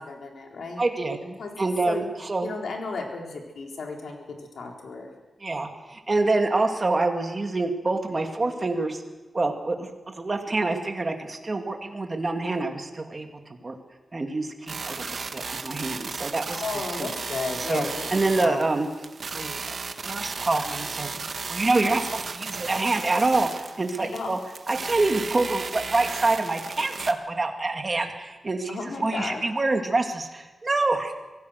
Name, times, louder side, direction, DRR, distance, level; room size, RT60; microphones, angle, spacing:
voice 1, 0.0-0.8 1.2-1.5 1.9-2.1 2.4-4.2 4.5-5.1 16.5-18.6 24.0-24.3 28.7-29.4, left 3 dB, 80° left, 1 dB, 3.9 m, -34 dB
voice 2, 0.8-1.2 1.6-2.5 5.4-9.0 9.3-13.3 13.6-13.8 14.1-16.6 17.0-17.1 17.7-18.9 19.3-19.8 20.0-21.1 21.5-24.4 24.7-31.1, right 2 dB, 30° right, 4 dB, 2.2 m, -26 dB
sound 1, 14.7-27.1, right 4 dB, 55° right, 1.3 m, -35 dB
24.5 x 16.5 x 6.5 m, 1.1 s
wide cardioid pair, 130°, 0 cm